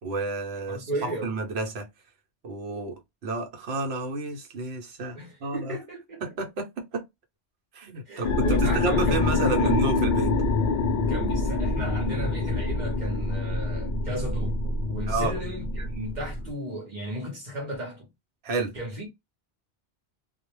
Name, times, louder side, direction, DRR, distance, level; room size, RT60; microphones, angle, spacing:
voice 1, 0.0-1.9 2.4-5.8 6.2-7.1 7.7-10.3 15.1-15.3 18.4-18.7, right 3 dB, 75° right, 1.0 m, -30 dB
voice 2, 0.7-1.3 5.1-6.2 8.1-9.8 11.1-18.1 18.7-19.1, right 1 dB, 45° right, 0.9 m, -35 dB
sound 1, 8.2-16.5, left 3 dB, 60° left, 0.4 m, -26 dB
2.4 x 2.1 x 3.0 m
omnidirectional pair, 1.1 m